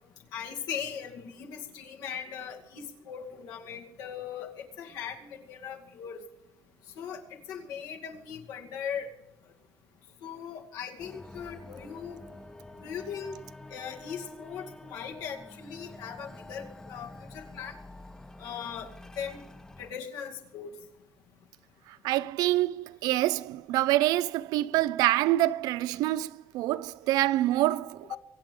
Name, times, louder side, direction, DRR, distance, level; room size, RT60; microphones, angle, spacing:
voice 1, 0.3-6.2 7.0-9.1 10.2-12.2 12.8-13.4 13.7-17.8 18.4-18.9 19.2-19.4 19.8-20.8 28.1-28.2, left 7 dB, 90° left, 2.4 m, -39 dB
sound 1, 11.0-19.9, left 2 dB, 10° left, 0.8 m, -48 dB
voice 2, 21.9-28.1, right 15 dB, 90° right, 0.5 m, -26 dB
23.5 x 8.6 x 5.4 m
cardioid pair, 120°, 6 cm